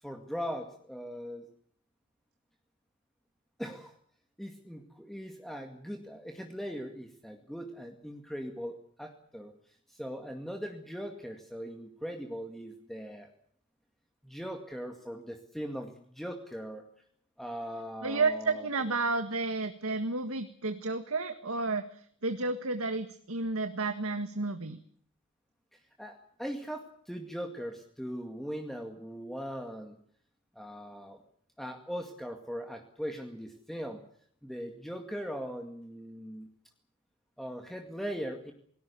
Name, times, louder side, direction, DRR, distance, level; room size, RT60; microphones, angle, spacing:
voice 1, 0.0-1.5 3.6-3.9 4.4-9.5 9.9-13.3 14.2-16.8 17.4-18.8 25.7-30.0 30.6-31.2 31.6-34.0 34.4-36.5 37.4-38.5, equal, ahead, 3 dB, 2.0 m, -40 dB
voice 2, 18.0-24.8, right 3 dB, 80° right, 8 dB, 1.7 m, -31 dB
28.0 x 19.0 x 7.0 m, 0.63 s
head